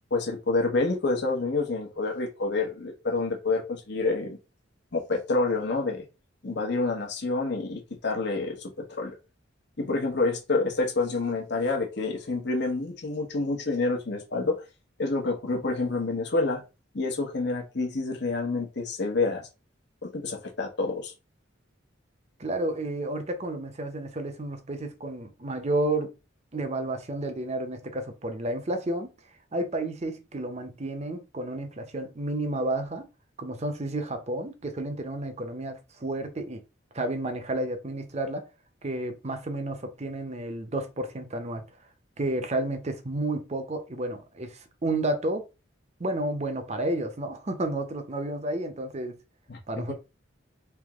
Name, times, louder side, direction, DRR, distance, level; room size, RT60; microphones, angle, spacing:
voice 1, 0.1-4.4 4.9-6.0 6.4-9.1 9.8-14.6 15.0-16.6 16.9-19.4 20.0-21.1 49.5-49.6, left 3 dB, 60° left, 1.0 m, -28 dB
voice 2, 22.4-26.1 26.5-29.1 29.5-33.1 33.4-36.6 36.9-38.5 38.8-41.6 42.2-45.4 46.0-49.2 49.7-49.9, right 1 dB, 35° right, 0.7 m, -31 dB
3.5 x 2.9 x 3.5 m
head